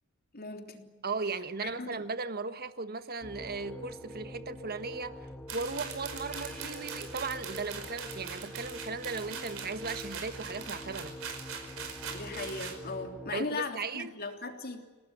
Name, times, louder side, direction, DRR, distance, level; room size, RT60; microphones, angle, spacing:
voice 1, 0.3-0.9 1.6-2.1 12.1-14.8, left 3 dB, 45° left, 3.4 m, -38 dB
voice 2, 1.0-5.1 5.5-11.2 13.3-14.1, right 4 dB, 45° right, 1.4 m, -37 dB
sound 1, 3.2-13.4, left 1 dB, 5° left, 1.2 m, -45 dB
sound 2, 3.5-8.6, right 2 dB, 85° right, 4.3 m, -52 dB
sound 3, 5.5-12.8, right 6 dB, 70° right, 5.2 m, -42 dB
27.5 x 18.5 x 9.6 m
head